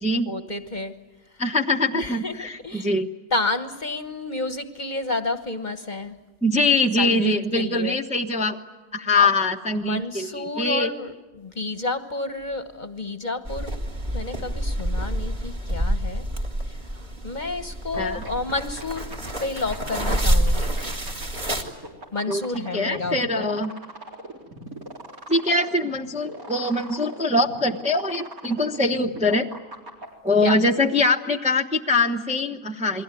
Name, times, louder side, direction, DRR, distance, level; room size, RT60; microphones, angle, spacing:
voice 1, 0.3-1.0 1.9-2.9 3.3-6.1 7.0-8.0 9.1-9.3 9.7-13.7 14.1-16.3 16.7-20.7 22.1-23.6 30.4-30.6, left 2 dB, 35° left, 9 dB, 1.3 m, -30 dB
voice 2, 1.4-3.1 6.4-8.6 8.9-10.9 18.0-18.2 22.3-23.7 25.3-29.5 30.2-33.0, left 2 dB, 5° right, 2 dB, 0.9 m, -23 dB
sound 1, 13.4-21.6, right 1 dB, 30° right, 2.5 m, -27 dB
sound 2, 17.9-30.1, right 2 dB, 80° right, 4.6 m, -39 dB
29.0 x 22.0 x 9.2 m, 1.2 s
omnidirectional pair, 1.5 m